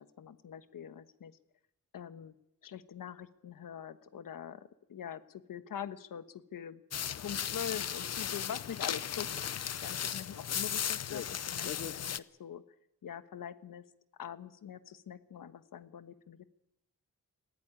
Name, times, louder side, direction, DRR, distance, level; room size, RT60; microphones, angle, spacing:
voice 1, 0.0-1.4 1.9-2.3 2.6-6.8 7.2-12.6 13.0-13.8 14.2-16.4, left 8 dB, 70° left, 11 dB, 1.3 m, -44 dB
sound 1, 6.9-12.2, left 9 dB, 50° left, 0.7 m, -36 dB
19.0 x 16.5 x 9.8 m, 0.87 s
wide cardioid pair, 130°, 34 cm